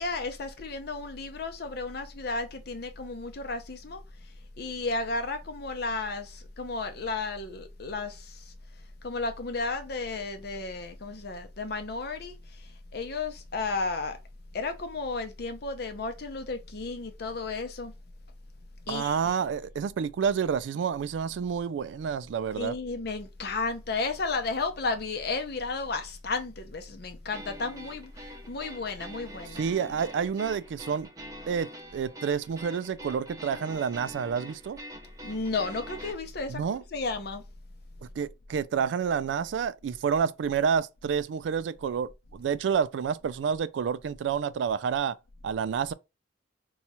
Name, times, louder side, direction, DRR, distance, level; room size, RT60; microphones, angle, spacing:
voice 1, 0.0-4.0 4.6-8.2 9.0-12.3 12.9-14.2 14.5-17.9 18.9-19.2 22.6-28.1 28.5-29.6 35.2-37.4, left 3 dB, 60° left, 0.7 m, -33 dB
voice 2, 18.9-22.7 29.5-31.1 31.5-34.8 36.5-36.8 38.2-45.2 45.4-45.9, right 7 dB, 90° right, 0.3 m, -29 dB
sound 1, 27.3-36.1, equal, 20° right, 0.6 m, -45 dB
2.9 x 2.3 x 4.1 m
head